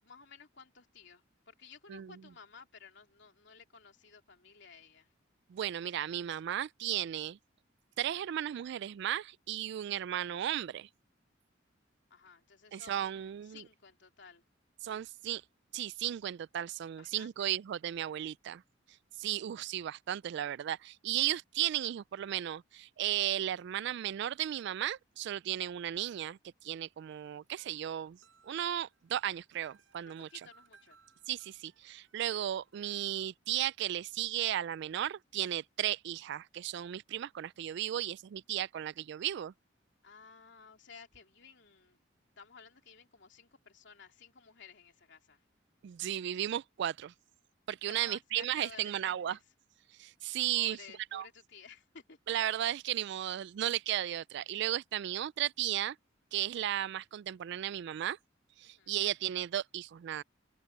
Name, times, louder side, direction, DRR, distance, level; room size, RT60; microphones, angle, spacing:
voice 1, 0.0-5.1 12.1-14.4 17.0-17.6 30.1-31.0 40.0-42.0 42.4-45.4 47.9-49.4 50.5-52.2 58.6-59.0, left 5 dB, 65° left, 3.2 m, -55 dB
voice 2, 1.9-2.2 5.5-7.4 8.0-10.9 12.7-13.6 14.8-15.4 15.7-18.6 19.2-28.2 28.4-30.3 31.3-39.5 45.8-47.1 47.7-49.4 50.0-50.8 51.1-51.3 52.3-56.0 56.3-58.2 58.6-60.2, right 11 dB, 60° right, 0.3 m, -35 dB
sound 1, 27.6-33.2, right 5 dB, 90° right, 6.4 m, -66 dB
head